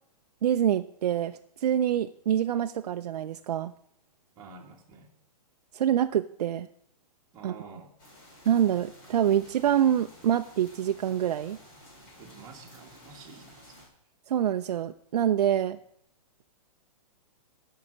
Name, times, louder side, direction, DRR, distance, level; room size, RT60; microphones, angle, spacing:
voice 1, 0.4-3.7 5.7-6.7 7.4-7.5 8.5-11.6 14.3-15.8, right 10 dB, 70° right, 7 dB, 0.5 m, -26 dB
voice 2, 4.3-5.1 7.3-7.9 12.2-13.9, right 4 dB, 15° right, -1 dB, 1.7 m, -49 dB
sound 1, 8.0-13.9, equal, 35° left, 4.3 m, -52 dB
16.5 x 5.6 x 5.0 m, 0.73 s
hypercardioid pair, 165°, 20 cm